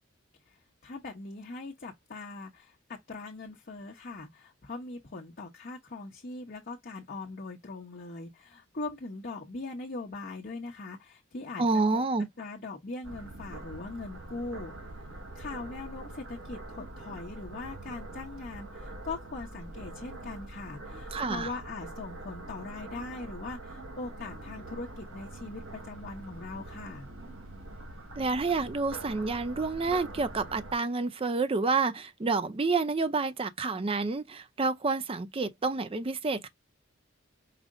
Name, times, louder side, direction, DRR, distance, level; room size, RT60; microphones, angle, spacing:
voice 1, 0.5-11.6 11.9-12.0 12.4-14.7 15.3-27.1, left 3 dB, 45° left, 0.9 m, -41 dB
voice 2, 11.6-12.3 21.1-21.5 28.2-36.5, right 3 dB, 25° right, 0.5 m, -29 dB
sound 1, 13.0-30.7, right 2 dB, 70° right, 1.4 m, -44 dB
5.0 x 2.0 x 3.6 m
head